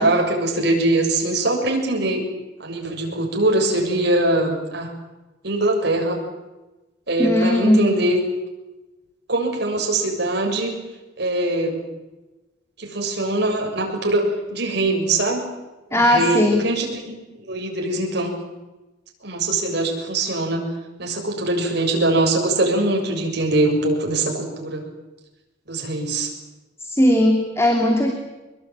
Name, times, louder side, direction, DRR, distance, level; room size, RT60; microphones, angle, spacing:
voice 1, 0.0-2.2 2.6-4.9 5.4-6.2 7.1-8.2 9.3-10.7 11.2-11.8 12.8-15.4 15.9-18.4 19.2-20.7 21.0-24.9 25.7-26.3, right 2 dB, 60° right, 1 dB, 7.0 m, -22 dB
voice 2, 7.2-7.8 15.9-16.6 26.8-28.1, left 1 dB, 15° left, 3 dB, 2.9 m, -18 dB
24.0 x 22.5 x 9.1 m, 1.1 s
head